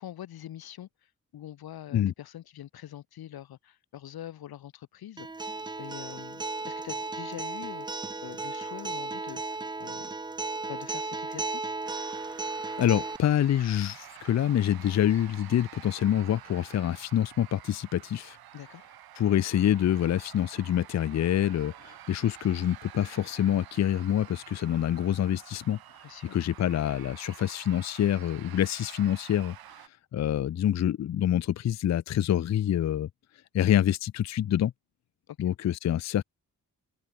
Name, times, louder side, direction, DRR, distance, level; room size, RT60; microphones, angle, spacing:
voice 1, 0.0-5.5 5.8-10.1 10.7-11.7 18.5-18.8 26.0-26.4 35.3-35.4, left 12 dB, 85° left, 0.9 m, -44 dB
Acoustic guitar, 5.2-13.2, right 3 dB, 15° right, 0.4 m, -35 dB
sound 1, 11.8-29.9, right 12 dB, 80° right, 0.7 m, -49 dB
voice 2, 12.8-18.4 19.2-25.8 26.3-29.6 30.1-33.1 33.5-34.7 35.4-36.2, left 11 dB, 50° left, 0.5 m, -26 dB
wide cardioid pair, 130°, 36 cm